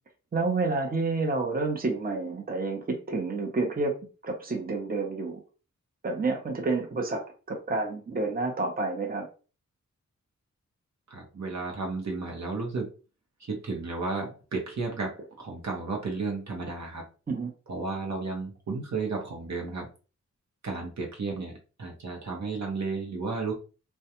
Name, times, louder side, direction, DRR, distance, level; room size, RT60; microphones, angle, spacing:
voice 1, 0.3-3.9 4.2-5.4 6.0-7.2 7.5-9.3 17.3-17.5, right 3 dB, 30° right, 2 dB, 0.7 m, -29 dB
voice 2, 11.1-12.9 13.5-17.0 17.7-19.9 20.6-21.5 21.8-23.5, right 4 dB, 60° right, 0 dB, 0.8 m, -33 dB
2.3 x 2.2 x 2.8 m, 0.34 s
cardioid pair, 55°, 31 cm